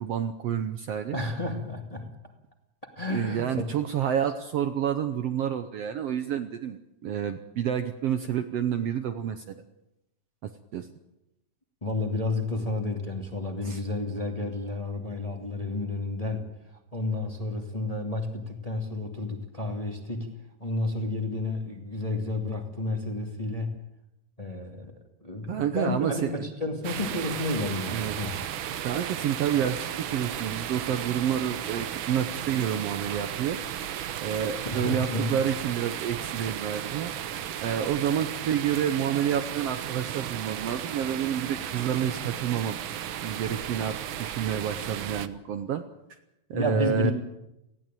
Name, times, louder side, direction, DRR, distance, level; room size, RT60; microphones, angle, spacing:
voice 1, 0.0-1.2 3.1-9.5 10.4-10.9 13.6-13.8 25.5-26.4 27.9-28.2 28.8-33.6 34.2-37.1 37.6-42.8 43.2-45.8 46.5-47.1, right 9 dB, 65° right, 8 dB, 1.7 m, -29 dB
voice 2, 1.1-2.2 2.9-3.6 4.0-4.1 11.8-23.8 24.4-24.9 25.2-28.4 34.6-35.4 46.5-47.1, left 2 dB, 15° left, 3 dB, 1.7 m, -31 dB
sound 1, 26.8-45.3, right 10 dB, 85° right, 1.1 m, -35 dB
19.0 x 15.5 x 9.1 m, 0.90 s
omnidirectional pair, 3.5 m